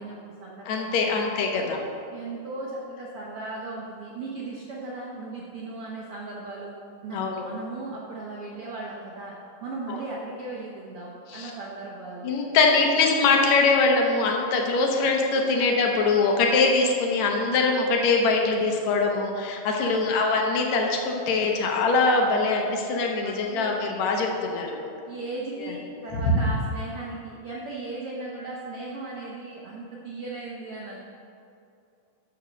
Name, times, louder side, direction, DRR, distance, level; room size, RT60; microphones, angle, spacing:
voice 1, 0.0-1.3 2.1-6.7 7.0-9.3 9.6-12.3 15.3-15.6 19.8-20.2 23.2-23.7 25.1-31.0, right 2 dB, 90° right, -4 dB, 1.2 m, -37 dB
voice 2, 0.7-1.9 7.1-7.5 9.9-10.0 11.3-11.5 12.2-24.8 25.6-25.7 26.1-26.5, left 3 dB, 65° left, 1 dB, 2.1 m, -23 dB
13.5 x 4.5 x 6.2 m, 2.6 s
omnidirectional pair, 4.0 m